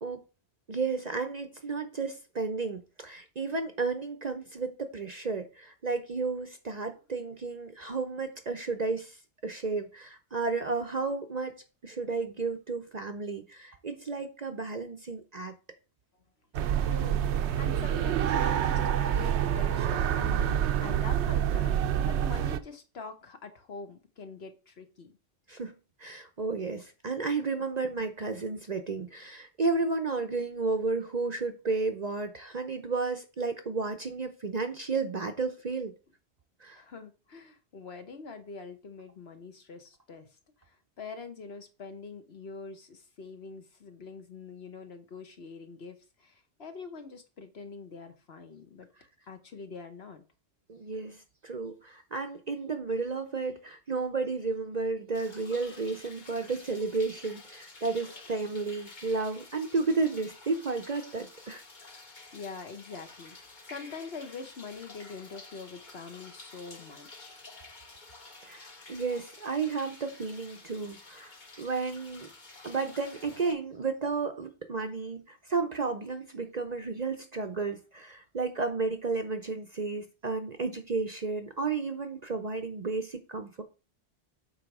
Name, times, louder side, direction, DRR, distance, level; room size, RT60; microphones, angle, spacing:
voice 1, 0.7-9.2 9.4-11.6 11.8-15.5 25.5-25.7 26.0-35.9 36.6-36.8 50.7-61.6 68.4-72.3 72.6-83.6, right 4 dB, 40° right, 0.7 m, -32 dB
sound 1, 16.5-22.6, right 10 dB, 70° right, 0.9 m, -27 dB
voice 2, 16.8-25.1 36.7-40.3 40.6-48.9 49.3-50.2 62.3-67.4, left 4 dB, 60° left, 1.3 m, -44 dB
sound 2, 55.1-73.5, left 3 dB, 40° left, 1.3 m, -50 dB
8.2 x 3.1 x 6.0 m
omnidirectional pair, 1.2 m